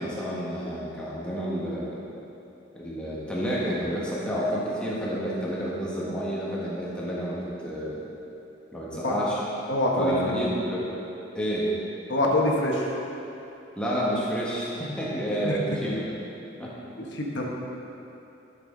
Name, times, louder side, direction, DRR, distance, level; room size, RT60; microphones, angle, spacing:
voice 1, 0.0-2.0 2.7-8.0 8.7-9.4 10.0-10.8 11.3-11.7 13.7-16.0 16.6-16.7, equal, 5° left, -7 dB, 1.4 m, -29 dB
voice 2, 9.7-10.1 12.1-12.9 15.4-15.6 17.1-17.5, left 1 dB, 65° left, -2 dB, 1.2 m, -24 dB
12.0 x 6.6 x 3.9 m, 2.9 s
head